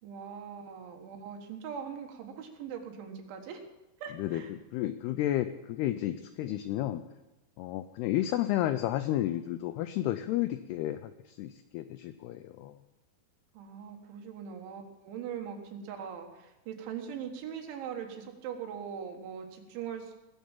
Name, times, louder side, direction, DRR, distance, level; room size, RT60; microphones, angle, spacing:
voice 1, 0.0-3.6 4.0-4.5 13.5-20.2, right 7 dB, 80° right, 3 dB, 3.9 m, -41 dB
voice 2, 4.1-7.0 7.6-12.8, left 13 dB, 85° left, 11 dB, 2.3 m, -32 dB
20.0 x 7.3 x 7.3 m, 1.0 s
omnidirectional pair, 5.3 m